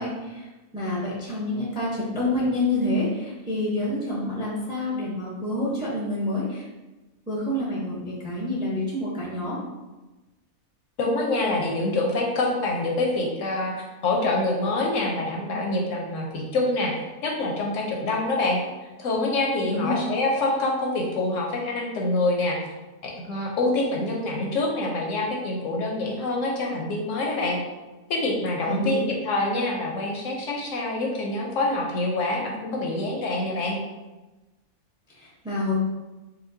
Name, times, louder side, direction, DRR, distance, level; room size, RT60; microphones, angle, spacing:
voice 1, 0.0-6.6 7.3-9.6 19.7-20.0 28.7-29.0 35.1-35.7, left 1 dB, 5° right, -5 dB, 0.4 m, -28 dB
voice 2, 11.0-18.6 19.0-22.6 23.0-27.6 28.1-33.8, left 2 dB, 70° left, -1 dB, 0.8 m, -26 dB
4.2 x 2.2 x 2.6 m, 1.1 s
omnidirectional pair, 1.5 m